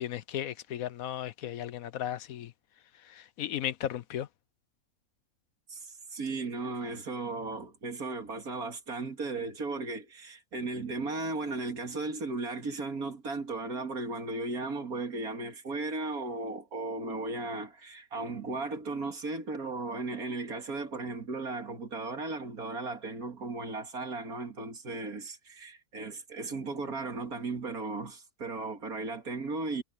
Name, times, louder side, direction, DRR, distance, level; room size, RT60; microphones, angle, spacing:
voice 1, 0.0-2.5 3.1-4.3, left 11 dB, 70° left, 1.1 m, -35 dB
voice 2, 5.7-29.8, right 3 dB, 70° right, 2.8 m, -36 dB
omnidirectional pair, 1.6 m